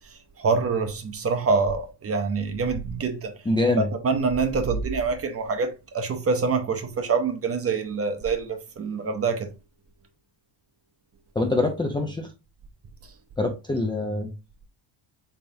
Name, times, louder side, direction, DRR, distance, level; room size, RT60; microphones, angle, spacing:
voice 1, 0.4-3.3 3.8-9.5, right 4 dB, 30° right, 0.7 m, -25 dB
voice 2, 3.5-3.9 11.4-12.3 13.4-14.3, left 2 dB, 10° left, 0.4 m, -24 dB
3.5 x 3.4 x 2.6 m
cardioid pair, 100°, 47 cm